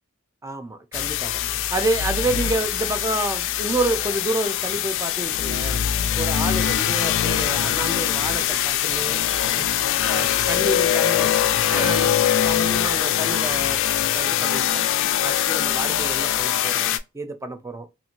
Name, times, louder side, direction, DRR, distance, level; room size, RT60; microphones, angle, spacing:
voice 1, 0.4-5.8 6.2-9.7 10.0-11.3 11.7-12.1 12.4-13.8 14.1-14.8 15.2-17.9, right 2 dB, 15° right, 0.4 m, -29 dB
sound 1, 0.9-17.0, left 11 dB, 60° left, 0.3 m, -22 dB
2.6 x 2.5 x 2.8 m
head